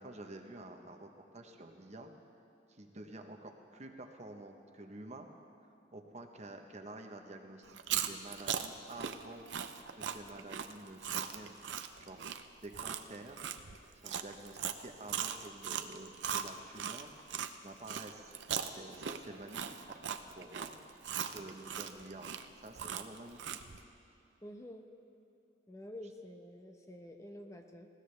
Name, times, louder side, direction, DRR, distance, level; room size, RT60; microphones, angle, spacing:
voice 1, 0.0-2.1 2.7-5.3 5.9-9.5 10.0-12.2 12.6-13.5 14.0-17.2 17.6-18.4 18.7-22.3 22.6-23.6, right 2 dB, 40° right, 4 dB, 1.0 m, -49 dB
Chewing mastication, 7.7-17.5 17.9-23.8, right 8 dB, 90° right, 0.6 m, -39 dB
voice 2, 24.4-24.9 25.7-27.9, left 1 dB, 15° left, 4 dB, 0.8 m, -49 dB
19.5 x 17.0 x 3.3 m, 2.7 s
head